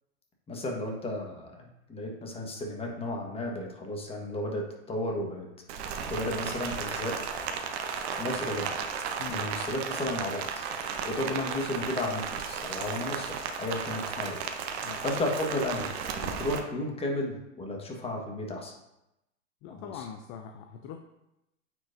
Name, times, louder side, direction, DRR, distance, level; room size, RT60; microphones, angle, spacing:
voice 1, 0.5-5.5 6.1-7.2 8.2-8.7 9.3-10.6 11.0-14.4 15.0-15.9 16.2-18.7 19.8-20.1, left 1 dB, 15° left, 0 dB, 1.4 m, -33 dB
Rain, 5.7-16.6, right 6 dB, 55° right, 0.9 m, -34 dB
voice 2, 19.6-21.0, left 7 dB, 35° left, 6 dB, 0.5 m, -42 dB
9.0 x 4.5 x 2.6 m, 0.88 s
hypercardioid pair, 105°, 38 cm